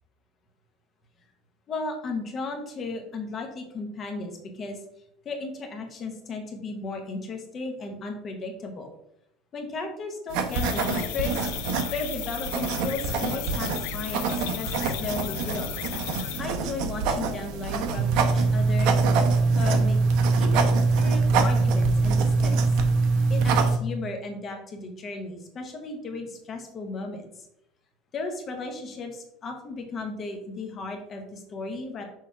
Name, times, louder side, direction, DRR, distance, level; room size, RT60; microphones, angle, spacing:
voice 1, 1.7-4.8 5.2-8.9 9.5-11.4 11.9-15.7 16.1-19.0 19.5-20.0 20.3-22.6 23.3-27.3 28.1-32.0, left 3 dB, 25° left, 4 dB, 1.1 m, -35 dB
sound 1, 10.3-23.8, right 5 dB, 55° right, 0.9 m, -29 dB
sound 2, 10.5-16.4, left 16 dB, 85° left, 0.4 m, -36 dB
sound 3, 18.0-23.8, right 3 dB, 15° right, 0.5 m, -22 dB
6.4 x 3.3 x 5.6 m, 0.77 s
cardioid pair, 180°, 0 cm